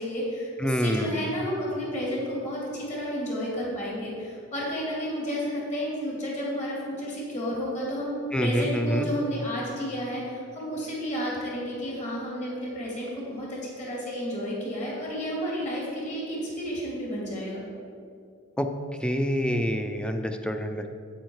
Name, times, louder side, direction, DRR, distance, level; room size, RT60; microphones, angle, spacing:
voice 1, 0.0-17.6, equal, 35° left, -4 dB, 2.7 m, -31 dB
voice 2, 0.6-1.3 8.3-9.1 18.6-18.7 19.0-20.9, equal, 5° left, 6 dB, 0.5 m, -26 dB
8.8 x 8.4 x 4.7 m, 2.3 s
head